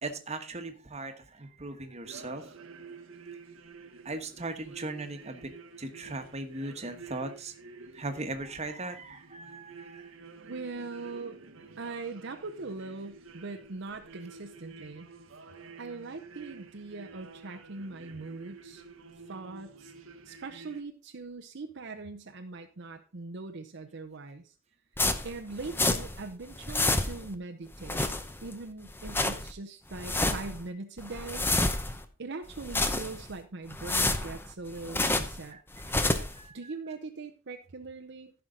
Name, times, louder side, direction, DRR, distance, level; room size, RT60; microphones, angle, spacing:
voice 1, 0.0-2.5 4.0-5.5 5.8-7.5 7.9-10.1 35.5-36.8, right 2 dB, 35° right, 6 dB, 1.3 m, -39 dB
sound 1, 2.0-20.8, right 4 dB, 90° right, 1.2 m, -50 dB
voice 2, 10.5-11.4 11.8-15.1 15.8-18.8 19.3-19.9 20.3-24.5 25.2-28.1 28.4-31.5 32.2-35.6 36.5-38.3, right 3 dB, 60° right, 6 dB, 0.8 m, -41 dB
sound 2, 25.0-26.3 26.5-27.3 27.7-28.5 28.9-29.5 29.9-30.6 31.0-32.0 32.5-33.3 33.7-35.4 35.7-36.4, left 2 dB, 10° left, 0.7 m, -29 dB
15.0 x 5.7 x 3.8 m, 0.36 s
head